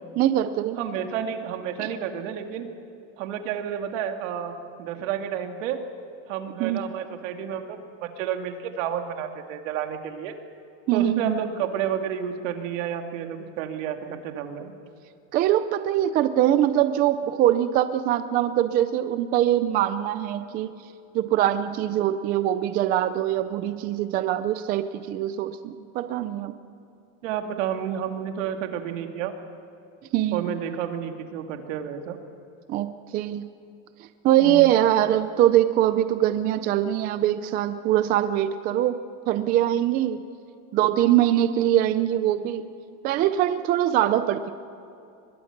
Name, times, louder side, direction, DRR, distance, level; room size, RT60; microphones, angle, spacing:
voice 1, 0.2-0.8 1.8-1.9 6.6-6.8 10.9-11.4 15.3-20.7 21.1-26.5 30.1-30.5 32.7-32.9 33.1-33.4 34.2-39.0 39.3-40.2 40.7-42.7 43.0-44.5, right 12 dB, 25° right, 11 dB, 0.4 m, -22 dB
voice 2, 0.8-2.7 3.2-4.5 4.8-5.8 6.3-10.3 10.9-14.7 27.2-29.3 30.3-32.2 34.4-34.7, right 9 dB, 75° right, 5 dB, 2.4 m, -30 dB
24.0 x 21.5 x 5.9 m, 2.6 s
supercardioid pair, 170°, 38 cm